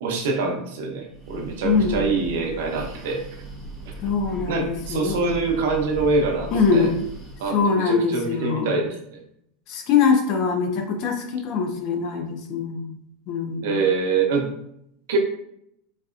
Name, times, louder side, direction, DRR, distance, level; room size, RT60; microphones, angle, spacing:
voice 1, 0.0-3.2 4.5-6.9 7.4-9.2 13.6-14.5 15.1-15.2, right 4 dB, 70° right, 2 dB, 0.7 m, -25 dB
Breathing, 1.0-7.6, right 1 dB, 5° left, 0.7 m, -38 dB
voice 2, 1.6-2.1 4.0-5.2 6.5-6.9 7.5-8.8 9.7-12.9 13.3-13.8, left 5 dB, 40° left, 4 dB, 0.5 m, -23 dB
4.0 x 2.2 x 2.4 m, 0.74 s
supercardioid pair, 175°, 0 cm